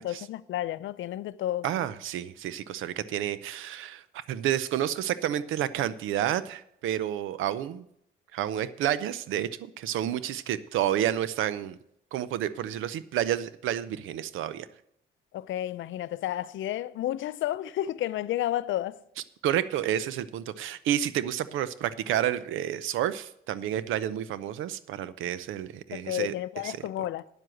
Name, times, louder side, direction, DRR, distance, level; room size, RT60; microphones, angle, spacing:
voice 1, 0.0-1.6 15.3-19.0 25.9-27.2, left 13 dB, 75° left, 0.6 m, -31 dB
voice 2, 1.6-7.8 8.3-11.8 12.1-14.7 19.4-26.3 26.6-26.8, right 11 dB, 85° right, 0.7 m, -30 dB
9.4 x 7.7 x 7.8 m
cardioid pair, 90°, 20 cm